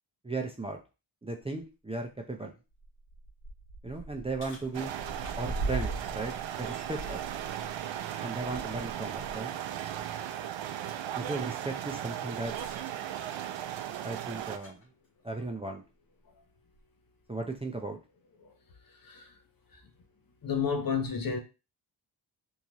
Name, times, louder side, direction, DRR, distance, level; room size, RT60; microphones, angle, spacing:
voice 1, 0.2-0.8 1.2-2.5 3.8-4.9 5.4-7.2 8.2-9.5 11.1-12.5 14.0-14.8 15.2-15.8 17.3-18.0, right 3 dB, 15° right, 2 dB, 0.6 m, -36 dB
sound 1, 2.0-2.1 2.7-9.4 9.8-10.0 12.4-14.8 15.8-15.9 16.7-16.8, right 2 dB, 85° left, 2.0 m, -41 dB
sound 2, 4.7-14.6, right 11 dB, 75° right, 0.6 m, -37 dB
voice 2, 18.9-19.4 19.7-19.8 20.4-21.4, left 6 dB, 45° left, 4 dB, 1.0 m, -32 dB
3.7 x 2.6 x 3.0 m, 0.29 s
cardioid pair, 65°, 46 cm